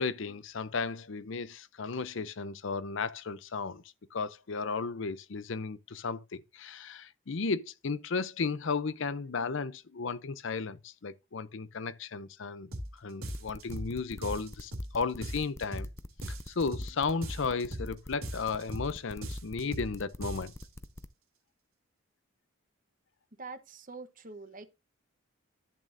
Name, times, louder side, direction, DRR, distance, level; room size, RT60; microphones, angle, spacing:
voice 1, 0.0-3.8 4.1-15.9 16.5-20.5, left 4 dB, 60° left, 0.6 m, -34 dB
sound 1, 12.7-12.9 13.2-13.9 14.2-14.9 15.2-15.9 16.2-16.9 17.2-17.9 18.2-18.9 19.2-19.9 20.2-20.7, equal, 80° right, 2.8 m, -38 dB
sound 2, 13.3-21.1, left 1 dB, 15° left, 0.5 m, -45 dB
voice 2, 23.4-24.7, right 3 dB, 40° right, 1.0 m, -45 dB
11.0 x 8.5 x 2.6 m
head